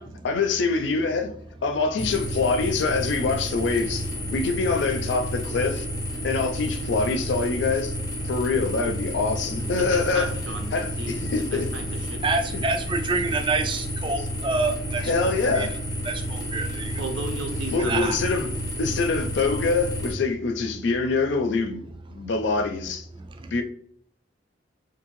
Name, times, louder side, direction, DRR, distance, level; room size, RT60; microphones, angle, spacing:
voice 1, 0.2-1.3 1.6-5.9 6.2-8.0 8.2-10.3 10.7-11.7 15.0-15.7 17.7-18.5 18.8-21.8 22.1-23.1 23.5-23.6, left 4 dB, 70° left, 0.4 m, -25 dB
sound 1, 2.0-20.1, equal, 20° left, 0.6 m, -31 dB
voice 2, 9.8-12.2 17.0-18.1, right 2 dB, 85° right, 0.7 m, -35 dB
voice 3, 12.2-15.7 16.0-17.0 17.9-18.2 23.2-23.6, right 3 dB, 25° right, 0.3 m, -28 dB
2.6 x 2.6 x 3.0 m
head